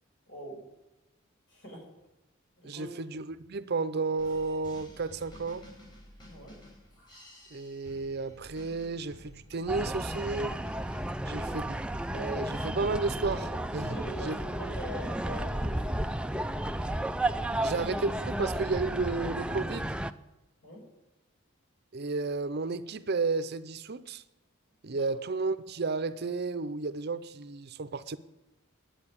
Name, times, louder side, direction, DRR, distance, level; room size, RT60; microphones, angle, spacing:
voice 1, 0.3-0.6 1.5-1.8 2.6-2.9 6.3-6.5 11.2-11.6 13.9-16.0 17.3-17.8 20.6-20.8 24.9-25.1, equal, 60° left, -1 dB, 6.2 m, -43 dB
voice 2, 2.6-5.6 7.5-10.6 11.3-11.8 12.1-13.9 14.2-14.4 17.6-20.0 21.9-24.2 24.8-28.2, right 3 dB, 50° right, 14 dB, 0.6 m, -32 dB
sound 1, 4.2-11.1, left 1 dB, 20° left, 4.8 m, -52 dB
sound 2, 9.7-20.1, right 1 dB, 5° right, 0.4 m, -33 dB
11.0 x 8.8 x 8.6 m, 1.0 s
head